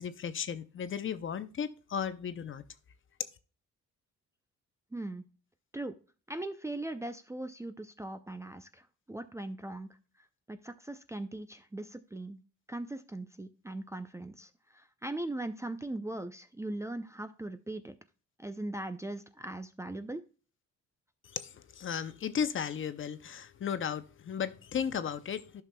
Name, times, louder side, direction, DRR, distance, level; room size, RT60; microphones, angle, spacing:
voice 1, 0.0-2.6 21.3-25.6, left 7 dB, 40° left, 0.6 m, -35 dB
voice 2, 4.9-5.2 5.7-5.9 6.3-8.8 9.1-9.9 10.5-12.4 12.7-14.5 14.7-18.0 18.4-20.2, right 2 dB, 10° right, 0.4 m, -39 dB
11.0 x 5.9 x 2.2 m
cardioid pair, 90°, 30 cm